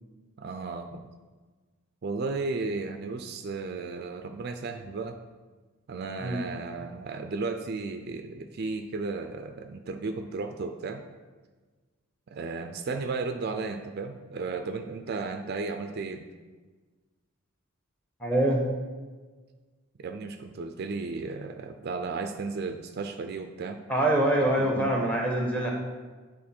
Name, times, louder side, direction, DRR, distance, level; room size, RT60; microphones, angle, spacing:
voice 1, 0.4-1.1 2.0-5.2 5.9-11.0 12.3-16.3 20.0-23.9 24.6-25.0, right 4 dB, 45° right, 7 dB, 0.4 m, -34 dB
voice 2, 18.2-18.7 23.9-25.7, right 1 dB, 5° left, -1 dB, 1.0 m, -24 dB
9.8 x 3.9 x 4.4 m, 1.4 s
head